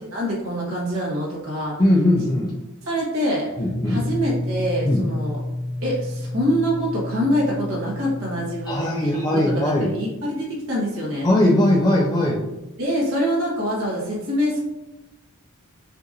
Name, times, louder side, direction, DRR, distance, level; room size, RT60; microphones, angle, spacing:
voice 1, 0.1-1.8 2.8-3.5 3.9-5.4 5.8-11.4 12.8-14.6, equal, 70° right, -4 dB, 1.3 m, -25 dB
voice 2, 1.8-2.5 3.6-4.0 4.9-5.0 8.7-9.9 11.2-12.5, left 1 dB, 20° left, -4 dB, 0.5 m, -19 dB
sound 1, 3.7-8.8, left 1 dB, 70° left, 1.1 m, -30 dB
6.5 x 2.5 x 2.7 m, 0.97 s
head